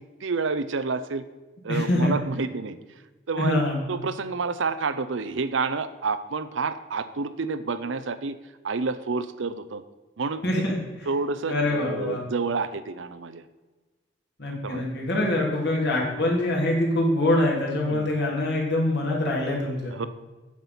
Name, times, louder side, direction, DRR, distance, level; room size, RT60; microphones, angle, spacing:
voice 1, 0.2-1.2 1.6-2.8 3.3-3.6 3.9-8.4 8.6-9.8 10.2-10.4 11.1-13.4 14.6-14.8 17.9-18.1 19.9-20.1, right 4 dB, 70° right, 13 dB, 0.6 m, -29 dB
voice 2, 1.7-2.1 3.4-3.8 10.4-11.1 11.5-12.2 14.4-19.9, left 1 dB, 55° left, -2 dB, 2.9 m, -24 dB
9.3 x 7.4 x 5.8 m, 1.2 s
head